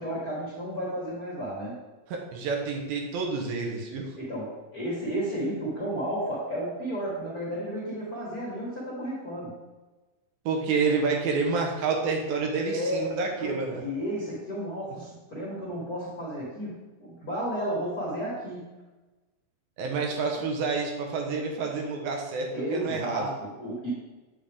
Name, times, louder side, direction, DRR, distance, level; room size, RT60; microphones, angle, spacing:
voice 1, 0.0-1.8 4.1-9.5 12.6-13.1 13.4-18.7 22.5-23.9, equal, 50° left, -6 dB, 1.1 m, -33 dB
voice 2, 2.1-4.1 10.5-13.8 19.8-23.3, right 4 dB, 85° right, 1 dB, 2.9 m, -28 dB
7.7 x 6.5 x 3.5 m, 1.2 s
omnidirectional pair, 4.1 m